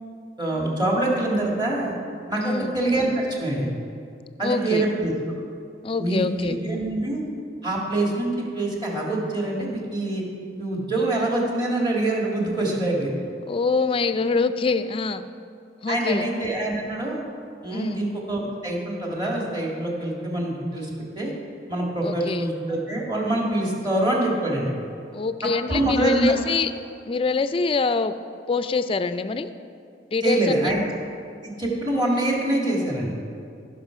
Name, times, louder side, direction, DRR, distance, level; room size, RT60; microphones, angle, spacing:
voice 1, 0.4-1.9 2.3-3.7 4.4-5.1 6.0-7.2 7.6-10.2 10.6-13.1 15.9-17.2 17.6-21.3 21.7-24.7 25.7-26.3 30.2-30.8 31.4-33.1, right 1 dB, 25° right, -2 dB, 1.9 m, -25 dB
voice 2, 2.4-2.7 4.4-4.8 5.8-6.5 13.5-15.2 15.8-16.3 17.7-18.0 22.0-22.4 25.1-26.7 27.1-28.1 28.5-29.5 30.1-30.7, left 4 dB, 30° left, 12 dB, 0.4 m, -24 dB
16.5 x 5.8 x 5.0 m, 2.5 s
head